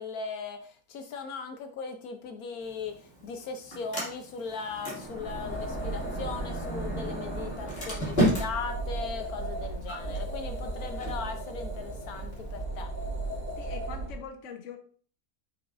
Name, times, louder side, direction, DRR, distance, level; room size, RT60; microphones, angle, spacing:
voice 1, 0.0-12.9, left 5 dB, 75° left, 7 dB, 1.2 m, -38 dB
Sliding door, 2.6-12.6, equal, 40° left, 2.6 m, -35 dB
sound 1, 5.0-14.2, right 2 dB, 30° right, 2.1 m, -36 dB
voice 2, 13.6-14.8, left 6 dB, 60° left, 6 dB, 1.2 m, -42 dB
7.9 x 6.1 x 2.6 m, 0.43 s
omnidirectional pair, 1.6 m